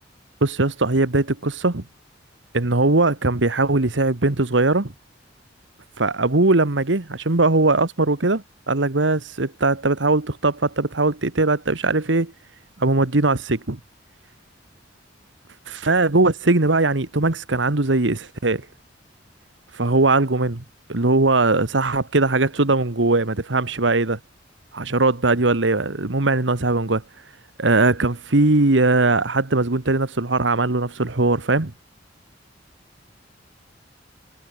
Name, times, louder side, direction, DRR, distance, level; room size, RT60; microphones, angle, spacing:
voice 1, 0.4-1.8 2.5-4.9 6.0-12.3 12.8-13.8 15.7-18.7 19.7-20.6 20.9-24.2 24.7-27.0 27.6-31.7, right 2 dB, 80° right, 1.6 m, -20 dB
head